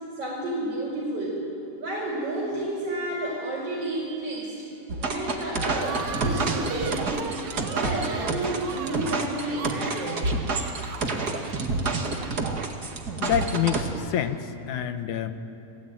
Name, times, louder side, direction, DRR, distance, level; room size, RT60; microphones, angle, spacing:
voice 1, 0.2-1.4 1.8-4.7 5.0-7.3 7.7-10.2, right 1 dB, 50° right, -6 dB, 5.8 m, -31 dB
sound 1, 4.9-13.9, right 3 dB, 35° right, 2.2 m, -28 dB
sound 2, 5.8-12.7, right 7 dB, 85° right, 3.0 m, -39 dB
voice 2, 13.2-15.3, left 9 dB, 90° left, 9 dB, 2.7 m, -27 dB
29.5 x 19.0 x 9.2 m, 2.7 s
omnidirectional pair, 3.4 m